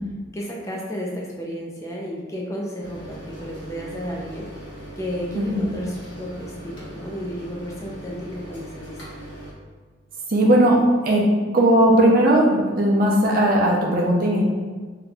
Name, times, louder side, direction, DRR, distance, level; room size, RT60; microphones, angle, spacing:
voice 1, 0.3-9.0, equal, 15° left, -2 dB, 0.4 m, -33 dB
sound 1, 2.8-9.5, right 1 dB, 70° left, 1.1 m, -39 dB
voice 2, 5.3-5.7 10.3-11.2 11.5-14.4, right 1 dB, 45° right, -2 dB, 0.5 m, -17 dB
2.7 x 2.3 x 4.0 m, 1.4 s
head